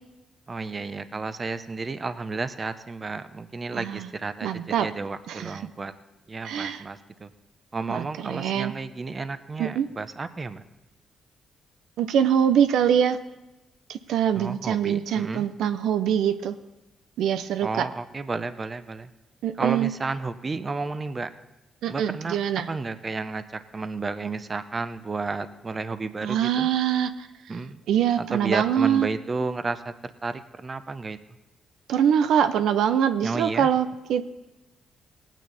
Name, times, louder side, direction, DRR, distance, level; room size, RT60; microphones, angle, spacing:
voice 1, 0.5-5.9 6.3-7.3 7.7-10.6 14.3-15.5 17.6-19.1 19.6-21.3 21.9-22.4 22.7-23.4 23.7-26.7 27.5-27.8 28.2-29.8 30.2-31.2 33.2-33.7, right 3 dB, 30° right, 12 dB, 0.7 m, -32 dB
voice 2, 3.7-4.1 4.4-4.9 5.3-5.6 6.4-6.8 7.9-8.7 9.6-9.9 12.0-13.2 13.9-16.6 17.2-17.9 19.4-19.9 21.8-22.7 26.2-27.3 27.9-29.1 31.9-34.3, right 9 dB, 85° right, 11 dB, 0.5 m, -24 dB
18.5 x 9.1 x 4.1 m, 0.99 s
cardioid pair, 100°, 0 cm